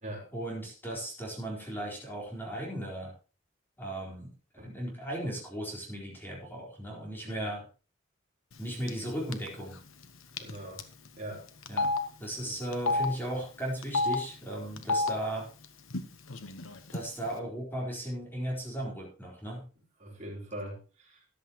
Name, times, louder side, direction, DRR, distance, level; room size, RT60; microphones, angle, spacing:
voice 1, 0.3-3.1 3.8-7.6 8.6-9.8 11.7-11.9 12.2-15.5 16.9-19.6, right 1 dB, 10° left, -2 dB, 4.1 m, -36 dB
Telephone, 8.9-9.1 9.3-9.5 10.4-10.5 10.8-10.9 11.7-12.0 12.7-13.1 13.8-14.2 14.8-15.1 15.9-16.0 16.3-17.0, left 2 dB, 80° left, 1.2 m, -28 dB
voice 2, 10.4-10.8 11.2-11.5 20.0-21.2, right 1 dB, 40° right, -2 dB, 4.2 m, -41 dB
13.5 x 11.0 x 3.0 m, 0.34 s
head